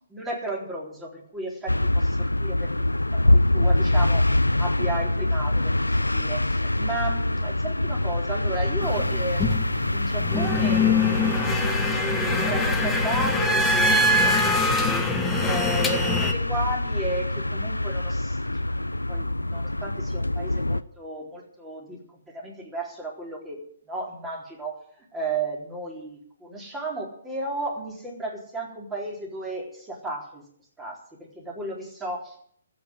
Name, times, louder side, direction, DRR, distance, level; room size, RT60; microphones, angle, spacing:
voice 1, 0.1-2.7 3.1-11.0 11.8-14.0 14.2-15.2 15.4-23.6 23.9-30.4 30.8-32.3, right 2 dB, 10° right, -2 dB, 4.1 m, -34 dB
sound 1, 1.7-20.8, left 1 dB, 90° left, 0.5 m, -25 dB
sound 2, 8.8-16.3, left 2 dB, 10° left, 1.4 m, -24 dB
14.0 x 8.6 x 9.1 m, 0.64 s
figure-of-eight pair, 130°, 0 cm